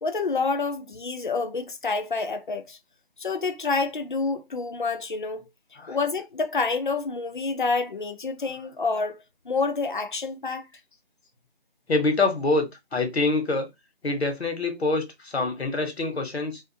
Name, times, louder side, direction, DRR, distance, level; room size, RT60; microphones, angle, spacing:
voice 1, 0.0-2.8 3.2-5.5 5.9-10.7, left 4 dB, 50° left, 0.4 m, -28 dB
voice 2, 11.9-12.7 12.9-13.7 14.0-16.6, left 3 dB, 70° left, 1.0 m, -25 dB
2.5 x 2.5 x 2.6 m
figure-of-eight pair, 170°, 32 cm